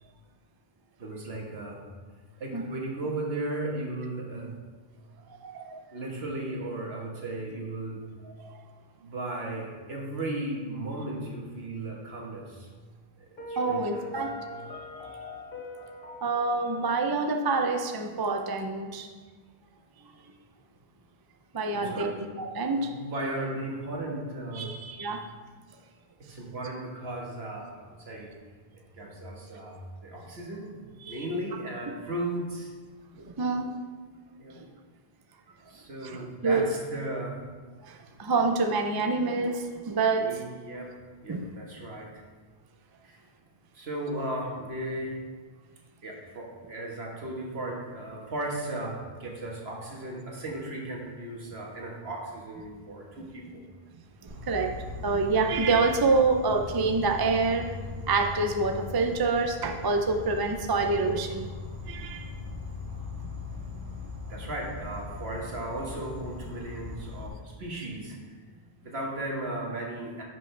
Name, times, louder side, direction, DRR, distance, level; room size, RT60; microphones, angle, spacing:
voice 1, 1.0-1.8 2.4-4.6 5.9-8.1 9.0-12.7 13.2-14.1 14.5-15.1 21.7-22.2 22.8-24.8 26.2-28.3 28.7-30.7 31.1-32.7 34.4-34.6 35.7-37.4 40.2-42.1 43.0-43.2 43.7-45.2 46.0-53.6 64.3-68.2 68.8-70.2, right 1 dB, 75° right, -1 dB, 1.7 m, -36 dB
voice 2, 5.4-5.8 8.4-8.5 13.6-14.3 16.2-19.1 21.5-23.0 24.5-25.2 31.0-31.2 33.1-33.7 34.6-34.7 36.0-36.7 37.8-40.4 41.3-41.5 54.2-54.7 55.0-57.7 58.1-61.5 61.9-62.3 63.2-63.3, right 3 dB, 30° right, 4 dB, 0.5 m, -27 dB
Piano, 13.4-18.3, left 2 dB, 60° left, 1.2 m, -42 dB
Insect, 54.3-67.3, left 3 dB, 55° right, 1.3 m, -40 dB
10.0 x 6.4 x 3.3 m, 1.4 s
omnidirectional pair, 1.1 m